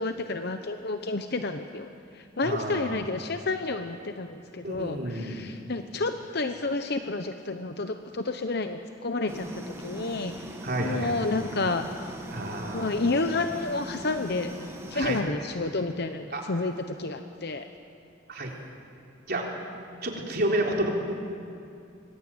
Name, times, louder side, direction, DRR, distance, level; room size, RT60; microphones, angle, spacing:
voice 1, 0.0-1.9 2.1-10.3 10.8-11.8 12.7-14.5 14.9-17.7, left 3 dB, 50° left, 7 dB, 0.9 m, -30 dB
voice 2, 2.4-3.0 4.6-5.5 10.6-11.2 12.3-12.9 14.9-15.2 16.3-16.4 18.3-18.5 19.3-19.5 20.0-20.9, right 1 dB, 50° right, 0 dB, 3.8 m, -30 dB
sound 1, 9.3-15.2, equal, 15° right, 1.9 m, -40 dB
25.0 x 20.5 x 9.0 m, 2.5 s
head